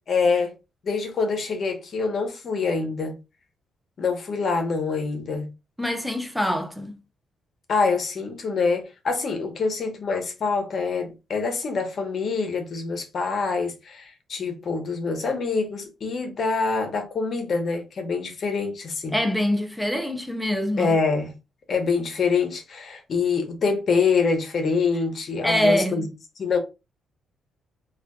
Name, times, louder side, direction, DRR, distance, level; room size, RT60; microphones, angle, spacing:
voice 1, 0.1-0.5 0.8-3.1 4.0-5.5 7.7-19.1 20.8-21.3 21.7-26.1 26.4-26.6, left 4 dB, 40° left, 0.9 m, -25 dB
voice 2, 5.8-7.0 19.1-21.0 25.4-26.1, left 1 dB, ahead, 0.5 m, -24 dB
4.0 x 2.4 x 2.3 m
cardioid pair, 150°, 0 cm